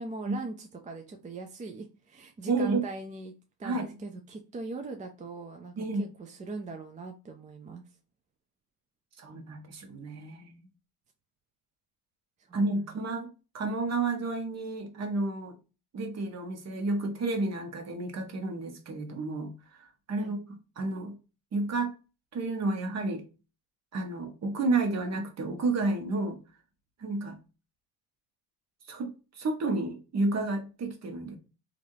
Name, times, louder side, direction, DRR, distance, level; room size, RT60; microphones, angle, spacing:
voice 1, 0.0-3.3 3.6-7.8 12.4-13.0 20.2-20.3, right 3 dB, 20° right, 0.4 m, -41 dB
voice 2, 2.5-2.8 3.6-3.8 5.8-6.1 9.2-10.7 12.5-13.3 13.5-15.5 15.9-19.5 19.8-20.4 20.8-21.1 21.5-21.9 22.3-23.2 23.9-26.4 27.0-27.4 28.9-29.1 29.3-31.4, right 3 dB, 40° right, 1.0 m, -31 dB
3.2 x 2.5 x 2.7 m
cardioid pair, 105°, 41 cm